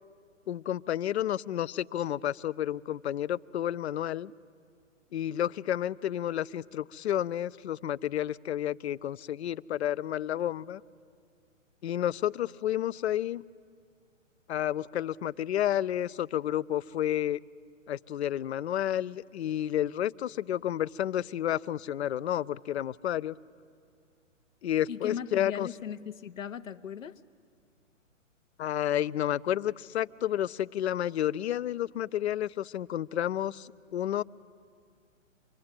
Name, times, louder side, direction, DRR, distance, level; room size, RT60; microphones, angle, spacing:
voice 1, 0.5-4.3 5.1-10.8 11.8-13.4 14.5-17.4 17.9-23.3 24.6-25.7 28.6-34.2, left 11 dB, 55° left, 18 dB, 0.6 m, -31 dB
voice 2, 24.9-27.2, left 8 dB, 80° left, 10 dB, 0.9 m, -38 dB
25.0 x 22.0 x 8.9 m, 2.2 s
hypercardioid pair, 130°, 39 cm